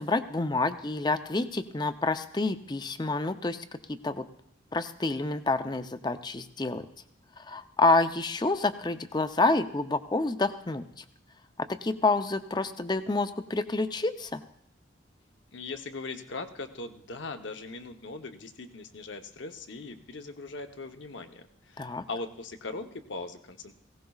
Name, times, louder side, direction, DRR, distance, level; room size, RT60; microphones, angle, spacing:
voice 1, 0.0-4.2 4.7-6.9 7.4-10.8 11.7-14.4 21.8-22.0, left 3 dB, 20° left, 10 dB, 0.5 m, -28 dB
voice 2, 15.5-23.7, left 3 dB, 75° left, 7 dB, 0.9 m, -40 dB
18.5 x 17.0 x 2.4 m, 0.73 s
head